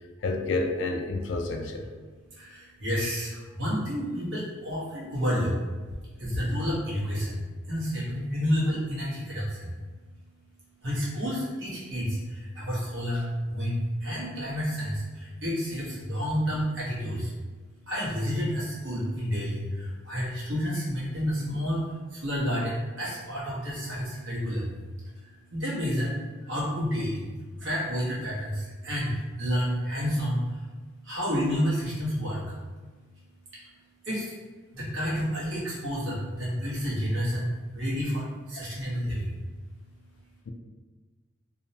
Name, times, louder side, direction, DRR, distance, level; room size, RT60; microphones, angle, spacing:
voice 1, 0.2-1.8 40.5-40.6, left 2 dB, 70° left, 3 dB, 0.3 m, -29 dB
voice 2, 2.3-5.6 6.2-7.4 7.7-9.7 10.8-17.3 17.9-24.8 25.1-26.2 26.4-27.2 27.6-30.6 31.0-32.5 33.5-33.7 34.0-34.3 34.7-39.4, equal, 75° right, -7 dB, 1.0 m, -30 dB
2.5 x 2.1 x 2.7 m, 1.3 s
head